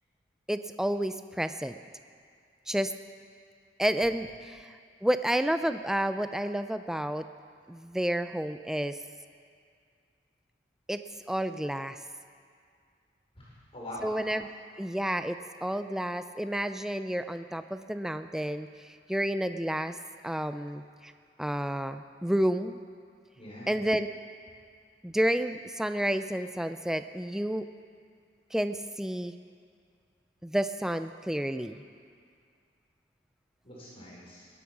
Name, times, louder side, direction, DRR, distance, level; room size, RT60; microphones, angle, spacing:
voice 1, 0.5-1.7 2.7-2.9 3.8-4.7 5.0-7.2 7.7-9.0 10.9-11.0 11.3-12.0 14.0-14.5 14.8-20.0 20.2-21.1 21.4-22.8 23.7-24.1 25.0-27.7 28.5-29.3 30.4-31.8, right 1 dB, 5° right, 10 dB, 0.3 m, -30 dB
voice 2, 13.3-14.1 23.3-23.8 33.6-34.5, left 1 dB, 35° left, -6 dB, 4.8 m, -44 dB
19.0 x 11.0 x 6.0 m, 2.2 s
head